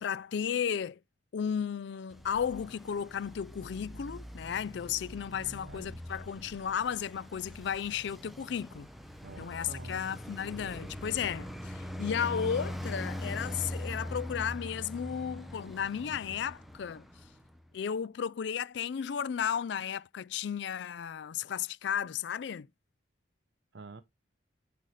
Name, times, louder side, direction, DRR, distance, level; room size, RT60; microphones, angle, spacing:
voice 1, 0.0-1.0 1.3-8.9 9.4-17.1 17.7-22.7, left 8 dB, 65° left, 0.3 m, -34 dB
Traffic noise roadway noise, 2.1-17.6, left 1 dB, ahead, 0.8 m, -42 dB
voice 2, 5.4-6.0 9.2-10.0 23.7-24.0, right 3 dB, 65° right, 0.7 m, -48 dB
9.9 x 4.1 x 3.2 m
head